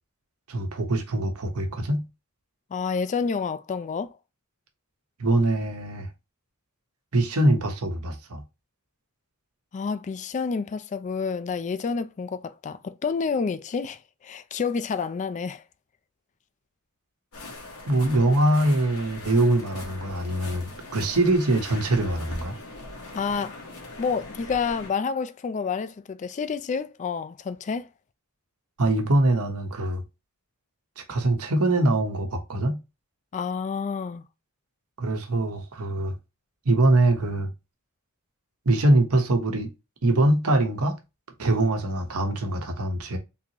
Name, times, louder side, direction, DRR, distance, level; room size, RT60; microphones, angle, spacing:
voice 1, 0.5-2.0 5.2-6.1 7.1-8.4 17.9-22.5 28.8-30.0 31.0-32.8 35.0-36.1 36.6-37.5 38.6-39.7 40.0-41.0 41.4-43.2, right 2 dB, 85° right, 1.0 m, -23 dB
voice 2, 2.7-4.2 9.7-15.6 23.1-23.6 24.0-27.9 33.3-34.2, left 5 dB, 35° left, 0.3 m, -29 dB
sound 1, 17.3-24.9, left 2 dB, 85° left, 1.2 m, -41 dB
3.7 x 2.9 x 2.7 m
head